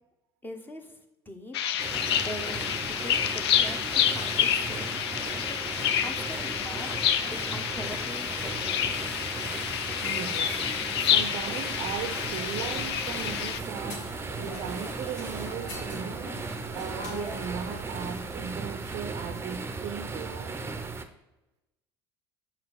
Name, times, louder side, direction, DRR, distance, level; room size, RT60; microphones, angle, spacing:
voice 1, 0.4-1.6 2.2-2.6 2.9-5.0 5.5-5.6 6.0-8.8, left 1 dB, 15° left, 0.9 m, -42 dB
sound 1, 1.5-13.6, left 9 dB, 80° left, 0.4 m, -28 dB
sound 2, 1.8-21.0, right 3 dB, 20° right, 0.6 m, -37 dB
voice 2, 10.0-10.6 11.0-20.6, right 8 dB, 55° right, 0.5 m, -38 dB
sound 3, 11.8-18.4, left 2 dB, 65° left, 1.5 m, -43 dB
5.6 x 4.5 x 4.0 m
hypercardioid pair, 65°, 13 cm